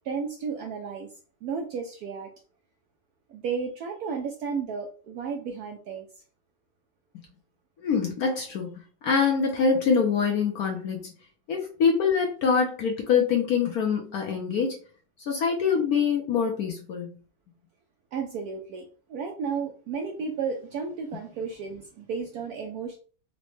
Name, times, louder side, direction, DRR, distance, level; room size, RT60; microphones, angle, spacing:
voice 1, 0.0-1.1 1.4-2.3 3.3-6.1 18.1-23.0, right 5 dB, 75° right, 2 dB, 0.9 m, -33 dB
voice 2, 7.8-8.7 9.0-11.1 11.5-14.8 15.2-17.1, left 6 dB, 70° left, 2 dB, 0.9 m, -24 dB
4.0 x 2.1 x 3.1 m, 0.39 s
omnidirectional pair, 2.1 m